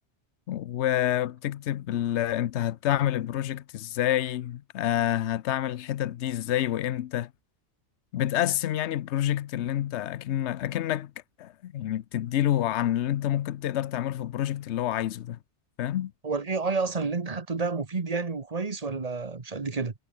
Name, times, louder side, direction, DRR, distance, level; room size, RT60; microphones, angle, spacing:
voice 1, 0.5-7.3 8.1-11.1 11.4-15.4 15.8-16.1, left 12 dB, 80° left, 0.9 m, -28 dB
voice 2, 16.2-19.9, right 4 dB, 35° right, 1.4 m, -30 dB
omnidirectional pair, 1.2 m